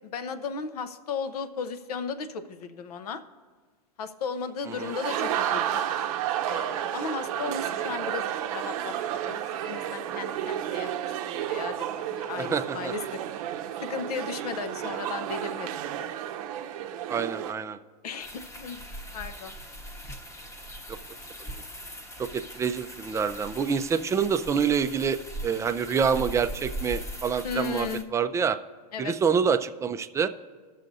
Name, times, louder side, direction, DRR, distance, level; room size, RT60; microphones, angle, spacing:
voice 1, 0.0-3.2 4.0-5.9 6.4-13.2 13.8-16.1 18.0-18.8 19.1-19.5 27.4-28.0 28.9-29.2, left 5 dB, 75° left, 10 dB, 0.7 m, -36 dB
sound 1, 4.7-17.5, right 10 dB, 60° right, 0.7 m, -31 dB
voice 2, 12.4-12.9 17.1-17.8 20.9-21.0 21.4-21.5 22.2-28.6 29.0-30.3, right 6 dB, 15° right, 10 dB, 0.4 m, -27 dB
sound 2, 18.2-28.0, right 1 dB, 15° left, 0.9 m, -40 dB
19.0 x 6.5 x 2.7 m, 1.5 s
hypercardioid pair, 105°, 20 cm